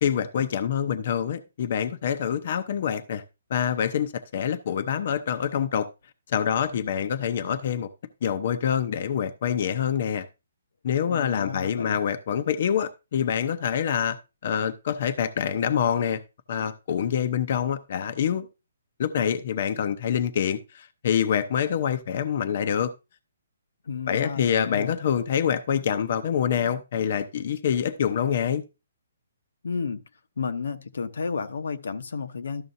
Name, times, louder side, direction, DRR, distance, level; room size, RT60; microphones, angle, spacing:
voice 1, 0.0-3.2 3.5-5.9 6.3-7.9 8.2-10.3 10.8-14.2 14.4-16.2 16.5-18.5 19.0-22.9 24.1-28.6, left 8 dB, 45° left, 0.6 m, -26 dB
voice 2, 11.1-12.0 23.9-24.9 29.6-30.0 30.4-32.6, left 5 dB, 80° left, 0.9 m, -32 dB
12.5 x 6.6 x 2.6 m
hypercardioid pair, 165°, 0 cm